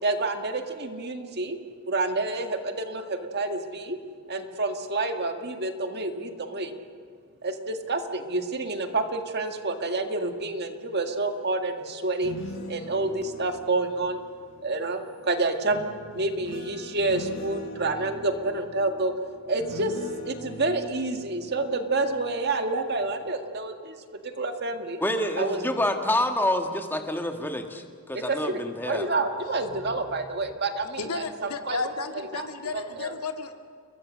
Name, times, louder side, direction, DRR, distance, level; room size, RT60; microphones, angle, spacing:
voice 1, 0.0-1.6 1.9-4.0 4.3-6.8 7.4-12.4 12.7-14.2 14.6-19.1 19.5-20.0 20.3-25.0 25.4-25.8 28.1-28.6 28.9-31.9 32.3-32.5 32.7-33.1, right 2 dB, 50° right, 6 dB, 1.9 m, -28 dB
sound 1, 12.0-14.9 15.7-22.6 23.0-23.3, left 1 dB, 60° left, 1.8 m, -42 dB
voice 2, 25.0-29.1, left 1 dB, 10° left, 5 dB, 1.7 m, -27 dB
voice 3, 31.0-33.5, left 4 dB, 85° left, 5 dB, 2.2 m, -33 dB
30.0 x 22.0 x 6.4 m, 2.1 s
head